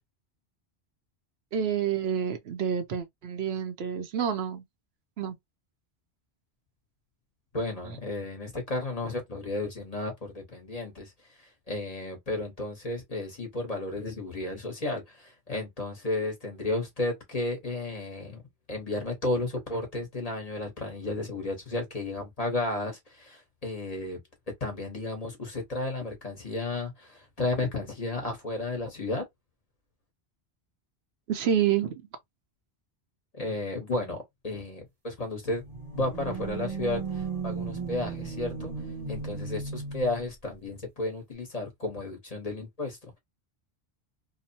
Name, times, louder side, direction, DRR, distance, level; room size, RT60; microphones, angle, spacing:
voice 1, 1.5-4.6 5.2-5.3 7.8-8.0 31.3-32.0, right 8 dB, 75° right, 0.8 m, -28 dB
voice 2, 7.5-11.1 11.4-18.4 18.7-24.2 24.6-29.2 33.3-35.6 35.9-38.7 39.1-43.2, left 2 dB, 35° left, 1.1 m, -33 dB
sound 1, 35.5-40.3, right 4 dB, 35° right, 0.8 m, -35 dB
2.9 x 2.1 x 2.7 m
omnidirectional pair, 1.1 m